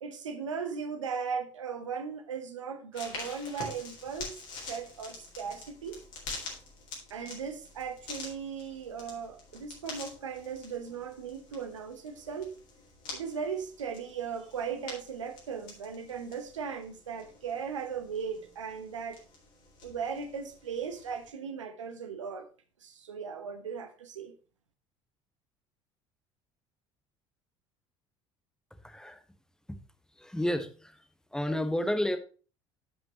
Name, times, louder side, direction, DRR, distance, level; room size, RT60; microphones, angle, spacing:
voice 1, 0.0-4.4 4.7-6.0 7.1-12.5 13.1-19.2 19.8-22.5 22.8-24.3, right 6 dB, 75° right, 1.0 m, -37 dB
sound 1, 2.9-21.3, left 3 dB, 55° left, 3.7 m, -47 dB
voice 2, 28.8-29.2 29.7-29.8 30.2-31.0 31.3-32.2, left 1 dB, 5° left, 1.4 m, -31 dB
13.0 x 6.0 x 2.9 m
figure-of-eight pair, 60°, 16 cm